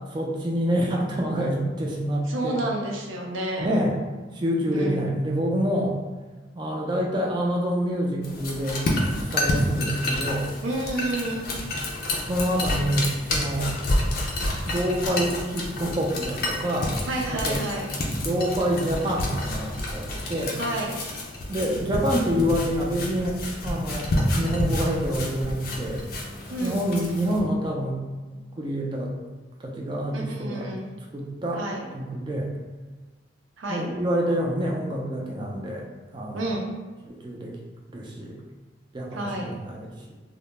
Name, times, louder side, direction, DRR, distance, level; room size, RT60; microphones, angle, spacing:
voice 1, 0.1-2.7 3.6-4.0 4.3-6.0 6.6-8.8 9.3-10.5 12.2-13.7 14.7-17.0 17.3-17.6 18.2-20.6 21.5-24.1 24.4-26.0 26.6-28.0 28.3-29.1 29.6-30.7 31.1-31.6 31.9-32.5 33.7-35.9 36.1-36.6 37.1-37.6 37.9-38.4 38.9-40.1, equal, 25° right, -1 dB, 0.3 m, -27 dB
voice 2, 2.3-3.8 4.7-5.1 10.6-11.4 17.1-17.9 20.6-20.9 26.5-26.8 30.1-30.8 31.6-31.8 33.6-33.8 36.3-36.7 39.1-39.5, right 1 dB, 90° right, 0 dB, 0.5 m, -29 dB
sound 1, 8.2-27.4, left 1 dB, 50° left, 0.4 m, -29 dB
2.1 x 2.0 x 3.1 m, 1.3 s
head